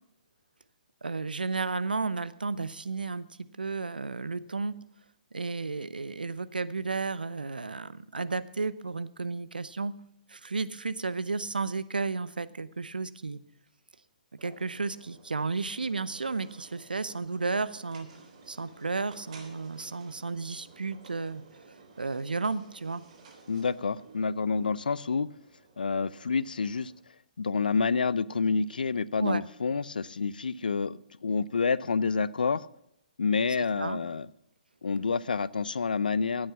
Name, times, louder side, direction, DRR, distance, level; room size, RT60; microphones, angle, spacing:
voice 1, 1.0-3.2 3.6-4.8 5.3-9.9 10.3-13.4 14.4-18.1 18.5-23.0 29.2-29.4 33.8-34.0, right 4 dB, 85° right, 16 dB, 0.8 m, -33 dB
sound 1, 14.4-27.0, right 4 dB, 50° right, 3.5 m, -55 dB
voice 2, 23.5-25.3 25.8-26.9 27.4-32.7 33.2-34.3 34.8-36.5, left 5 dB, 75° left, 20 dB, 0.5 m, -28 dB
14.5 x 8.9 x 5.8 m, 0.82 s
figure-of-eight pair, 130°, 5 cm